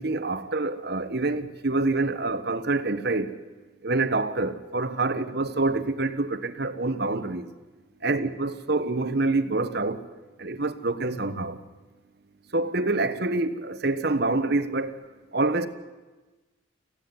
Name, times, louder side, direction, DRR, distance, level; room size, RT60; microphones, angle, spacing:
voice 1, 0.0-3.4 3.8-7.5 8.0-10.0 10.4-11.6 12.5-15.0 15.3-15.7, right 2 dB, 50° right, 1.2 m, -26 dB
27.0 x 15.5 x 9.7 m
head